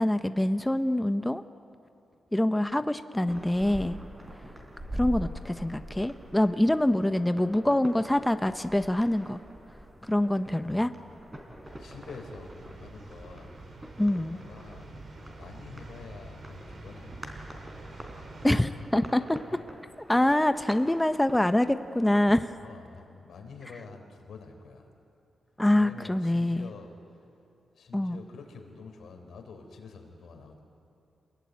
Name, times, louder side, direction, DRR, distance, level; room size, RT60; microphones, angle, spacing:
voice 1, 0.0-1.4 2.3-4.0 4.9-9.4 10.0-10.9 14.0-14.4 18.4-19.4 20.1-22.5 25.6-26.7 27.9-28.2, left 1 dB, 10° left, 9 dB, 0.7 m, -25 dB
sound 1, 3.3-22.5, right 1 dB, 15° right, 3.6 m, -44 dB
voice 2, 10.6-11.1 11.8-13.6 14.3-14.9 15.4-17.4 22.6-24.9 25.7-26.9 27.8-30.6, left 4 dB, 85° left, 4 dB, 3.9 m, -47 dB
sound 2, 11.6-18.7, right 2 dB, 55° right, 4.0 m, -47 dB
27.5 x 21.5 x 9.5 m, 2.7 s
wide cardioid pair, 125°, 0 cm